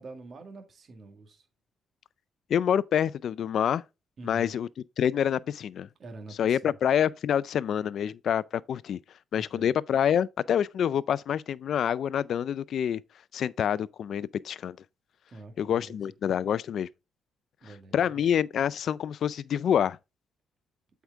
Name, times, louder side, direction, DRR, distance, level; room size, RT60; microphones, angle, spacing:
voice 1, 0.0-1.5 4.2-4.6 6.0-6.8 9.3-9.7 15.3-16.0 17.6-18.1, right 2 dB, 45° right, 1.8 m, -46 dB
voice 2, 2.5-3.8 4.2-4.7 5.0-5.9 6.4-8.4 8.7-9.0 9.3-13.0 13.3-14.8 15.6-16.9 17.9-20.0, left 9 dB, 60° left, 0.3 m, -27 dB
8.0 x 4.7 x 3.5 m
cardioid pair, 100°, 0 cm